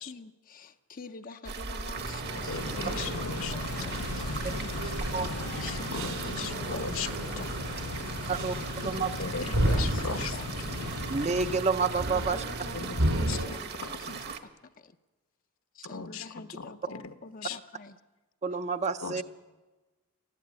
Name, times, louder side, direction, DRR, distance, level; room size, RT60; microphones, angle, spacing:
voice 1, 0.0-5.1 5.6-6.9 7.3-8.0 8.2-8.3 8.8-9.2 9.4-10.8 12.2-14.5 14.8-14.9 15.7-18.0, left 3 dB, 40° left, 8 dB, 0.6 m, -46 dB
sound 1, 1.4-14.4, right 5 dB, 45° right, 1.3 m, -39 dB
sound 2, 1.9-13.5, right 1 dB, 70° right, 3.4 m, -33 dB
voice 2, 2.4-3.5 5.6-7.1 9.2-10.3 12.7-13.0 13.3-14.2 15.8-17.0 17.4-17.6 19.0-19.2, left 5 dB, 65° left, 9 dB, 1.2 m, -38 dB
sound 3, 2.5-11.6, left 4 dB, 85° left, 0.7 m, -39 dB
voice 3, 11.1-12.4 18.4-19.2, right 4 dB, 30° right, 10 dB, 0.6 m, -29 dB
19.5 x 14.5 x 9.7 m, 1.2 s
head